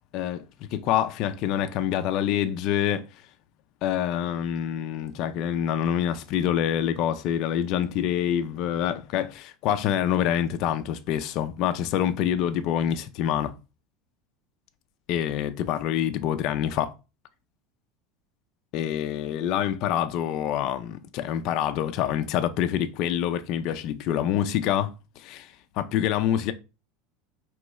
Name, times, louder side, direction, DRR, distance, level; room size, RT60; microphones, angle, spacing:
voice 1, 0.1-0.4 0.7-3.1 3.8-13.5 15.1-16.9 18.7-26.5, left 10 dB, 50° left, 0.4 m, -26 dB
4.6 x 3.1 x 3.0 m
supercardioid pair, 155°, 0 cm